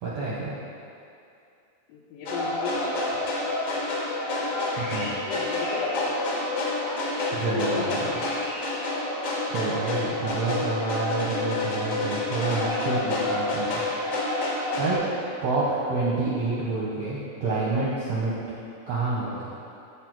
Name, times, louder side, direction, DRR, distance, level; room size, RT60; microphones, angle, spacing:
voice 1, 0.0-0.6 4.8-5.1 7.3-8.1 9.5-14.1 14.8-15.0 15.4-18.4 18.9-19.6, right 3 dB, 75° right, -7 dB, 1.5 m, -28 dB
voice 2, 1.9-3.1 3.7-3.8 4.2-4.5 5.1-6.4 7.3-8.4 14.7-15.0, left 3 dB, 75° left, -5 dB, 2.3 m, -34 dB
sound 1, 2.3-14.9, left 2 dB, 55° left, 1.8 m, -28 dB
6.8 x 6.8 x 4.5 m, 2.6 s
omnidirectional pair, 4.1 m